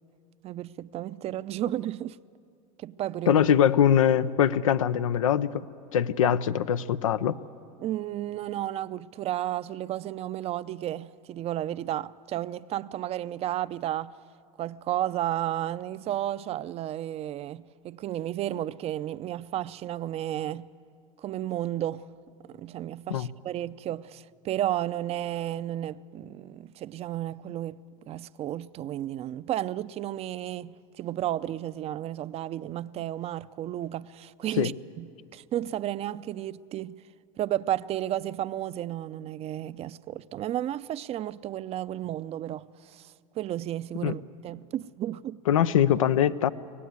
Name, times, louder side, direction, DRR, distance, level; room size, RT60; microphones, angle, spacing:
voice 1, 0.4-2.2 2.8-3.4 6.2-6.3 7.8-14.2 14.6-20.7 21.2-22.1 22.5-34.7 35.0-37.0 37.4-45.4, right 12 dB, 40° right, 0.5 m, -33 dB
voice 2, 3.3-5.6 5.9-7.3 23.1-23.3 34.6-34.7 44.0-44.2 45.5-46.5, left 9 dB, 85° left, 0.6 m, -22 dB
24.0 x 18.0 x 9.5 m
hypercardioid pair, 95°, 17 cm